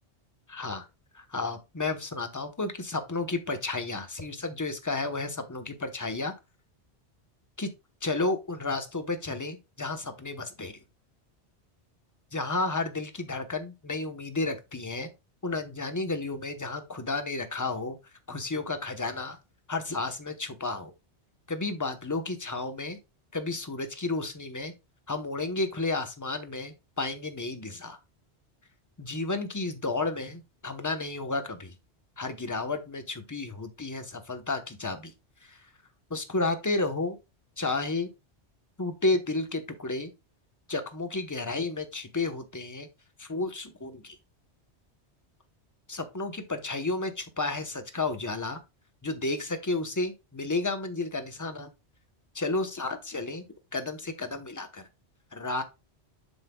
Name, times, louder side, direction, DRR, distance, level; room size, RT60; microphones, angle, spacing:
voice 1, 0.5-0.8 1.3-6.3 7.6-7.7 8.0-10.7 12.3-15.1 15.4-18.0 18.3-19.4 19.7-20.9 21.5-23.0 23.3-24.7 25.1-28.0 29.0-31.7 32.2-35.1 35.4-35.7 36.1-37.2 37.6-38.1 38.8-40.1 40.7-42.9 43.2-44.2 45.9-48.6 49.0-51.7 52.3-53.4 53.7-54.9 55.3-55.6, left 3 dB, 20° left, 0.9 m, -32 dB
7.3 x 7.3 x 2.3 m
omnidirectional pair, 1.1 m